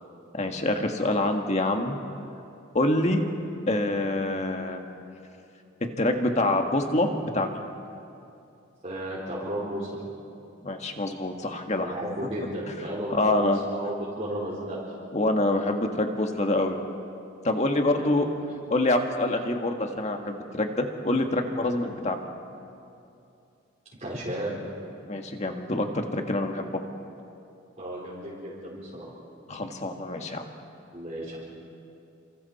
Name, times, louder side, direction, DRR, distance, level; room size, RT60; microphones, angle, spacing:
voice 1, 0.3-2.0 2.7-3.2 3.7-4.8 6.0-7.1 7.3-7.6 10.6-11.9 13.1-13.6 15.1-16.8 17.4-18.3 18.7-22.3 25.0-26.8 29.5-30.4, left 2 dB, 35° left, 4 dB, 1.8 m, -26 dB
voice 2, 8.8-10.2 11.8-14.8 17.9-18.3 24.0-24.5 27.8-29.1 30.9-31.5, right 1 dB, 35° right, -7 dB, 4.3 m, -34 dB
29.5 x 26.5 x 4.3 m, 2.6 s
head